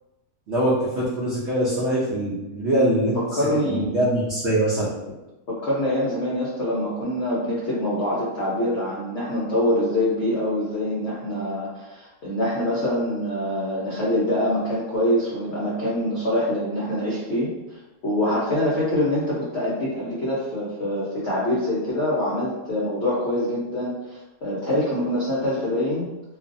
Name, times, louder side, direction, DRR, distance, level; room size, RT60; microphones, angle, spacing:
voice 1, 0.5-3.2 3.7-4.9, right 1 dB, 60° right, -7 dB, 0.8 m, -23 dB
voice 2, 3.3-4.0 5.5-26.1, left 1 dB, 55° left, -7 dB, 0.7 m, -25 dB
2.6 x 2.4 x 2.5 m, 1.0 s
omnidirectional pair, 1.7 m